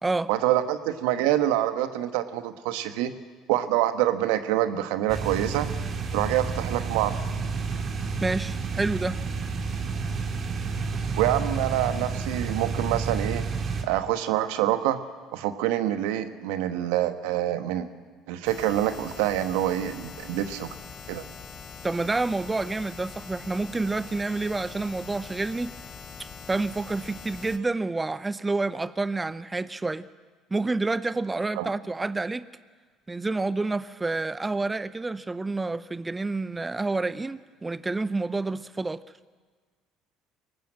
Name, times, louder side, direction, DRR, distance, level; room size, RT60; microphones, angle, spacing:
voice 1, 0.3-3.1 3.5-5.7 6.1-7.1 11.2-13.4 13.8-15.0 15.3-17.9 18.3-20.7 21.1-21.2 31.6-31.7, right 13 dB, 75° right, 1.3 m, -26 dB
sound 1, 5.1-13.8, right 4 dB, 45° right, 2.8 m, -30 dB
voice 2, 8.2-9.2 21.8-25.7 26.2-30.1 30.5-32.4 33.1-39.0, right 3 dB, 20° right, 0.7 m, -28 dB
sound 2, 18.4-27.6, left 5 dB, 45° left, 3.1 m, -43 dB
22.5 x 19.0 x 7.7 m
hypercardioid pair, 65°, 0 cm